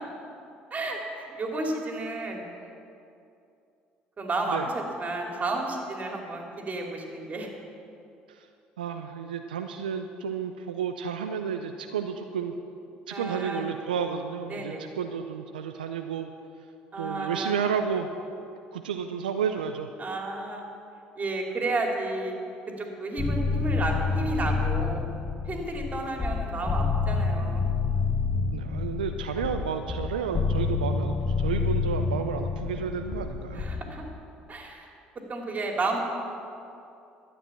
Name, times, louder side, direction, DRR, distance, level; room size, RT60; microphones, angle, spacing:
voice 1, 0.7-2.4 4.2-7.5 13.1-13.6 14.5-14.9 16.9-17.6 20.0-20.7 21.2-22.3 22.8-25.0 25.5-27.6 33.5-34.0 34.5-34.9 35.3-36.0, right 2 dB, 35° right, 1 dB, 2.8 m, -32 dB
voice 2, 8.8-12.5 13.1-16.3 17.0-18.1 18.7-19.9 28.5-33.6, right 7 dB, 90° right, 6 dB, 0.5 m, -31 dB
sound 1, 23.2-33.8, left 4 dB, 25° left, 1.3 m, -28 dB
12.5 x 8.8 x 7.2 m, 2.6 s
hypercardioid pair, 60°, 5 cm